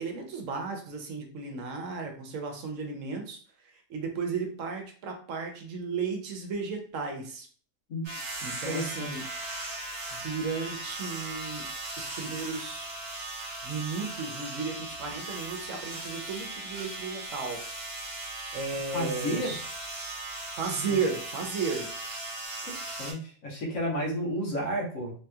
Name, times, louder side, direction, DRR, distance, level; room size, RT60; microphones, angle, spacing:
voice 1, 0.0-7.5 8.4-9.3 10.1-11.7 12.0-12.9 13.6-17.8 18.5-19.7 20.6-21.9, right 5 dB, 70° right, 3 dB, 1.0 m, -34 dB
sound 1, 8.0-23.1, right 2 dB, 25° right, 0.8 m, -38 dB
voice 2, 8.6-9.1 18.9-19.6 22.6-25.1, equal, 70° left, -3 dB, 1.4 m, -32 dB
3.3 x 2.7 x 2.3 m, 0.43 s
omnidirectional pair, 1.5 m